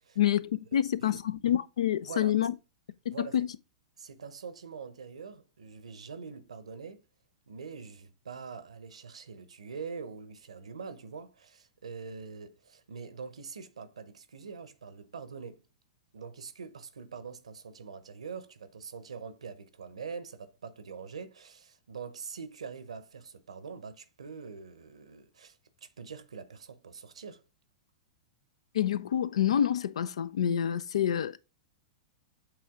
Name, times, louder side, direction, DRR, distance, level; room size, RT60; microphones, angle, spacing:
voice 1, 0.2-2.5 3.1-3.5 28.7-31.4, left 10 dB, 70° left, 0.4 m, -27 dB
voice 2, 2.0-2.4 3.1-3.5 4.0-7.0 7.5-15.6 16.1-27.4, right 5 dB, 80° right, 0.8 m, -44 dB
8.1 x 3.4 x 3.6 m
hypercardioid pair, 105°, 3 cm